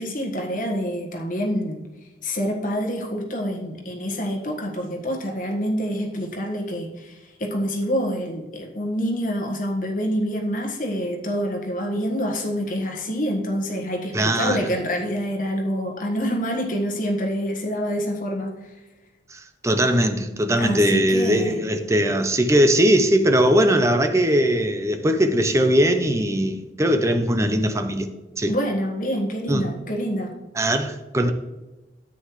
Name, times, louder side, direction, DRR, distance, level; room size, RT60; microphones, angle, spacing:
voice 1, 0.0-1.8 2.2-18.7 20.6-21.6 28.5-30.3, equal, 45° left, 1.5 m, -26 dB
voice 2, 14.1-14.6 19.3-28.1 28.4-28.5 29.5-29.6 30.6-31.3, equal, 15° right, 0.6 m, -20 dB
9.7 x 8.7 x 3.2 m
head